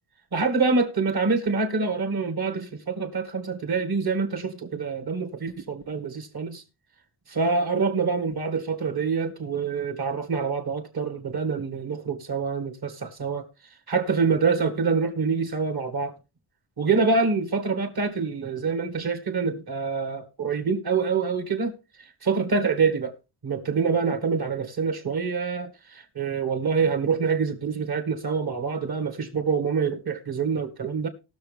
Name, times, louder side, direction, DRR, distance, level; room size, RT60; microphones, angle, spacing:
voice 1, 0.3-6.6 7.3-13.5 13.9-16.1 16.8-21.7 22.2-23.1 23.4-31.1, right 5 dB, 50° right, 2.4 m, -26 dB
18.0 x 6.7 x 3.5 m
cardioid pair, 80°, 49 cm